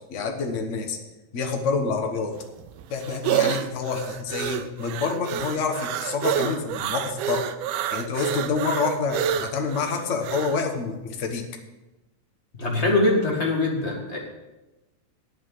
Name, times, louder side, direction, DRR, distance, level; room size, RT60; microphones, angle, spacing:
voice 1, 0.1-1.0 1.3-2.4 2.9-7.5 7.9-11.4, left 5 dB, 65° left, 4 dB, 0.7 m, -27 dB
sound 1, 2.4-10.6, right 10 dB, 80° right, 1.5 m, -28 dB
voice 2, 12.5-14.3, left 2 dB, 25° left, -1 dB, 1.7 m, -23 dB
9.0 x 7.4 x 8.3 m, 1.1 s
omnidirectional pair, 3.3 m